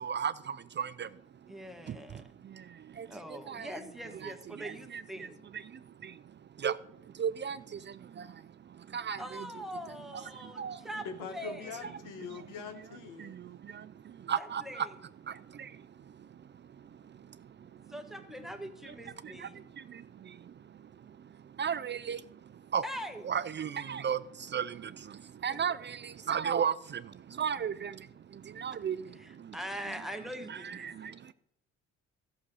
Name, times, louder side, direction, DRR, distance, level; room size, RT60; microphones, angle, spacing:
voice 1, 0.0-3.8 4.1-10.9 11.8-12.0 12.3-12.4 12.8-12.9 13.2-14.9 15.2-17.9 18.9-22.8 23.2-29.6 30.5-31.3, right 7 dB, 40° right, 0.4 m, -37 dB
voice 2, 1.5-2.2 3.1-5.4 9.2-11.9 14.4-14.9 17.9-19.6 22.8-23.3 29.2-31.1, equal, ahead, 1.5 m, -43 dB
voice 3, 11.0-13.4, left 6 dB, 85° left, 1.6 m, -43 dB
13.0 x 6.3 x 6.3 m
cardioid pair, 90°, 30 cm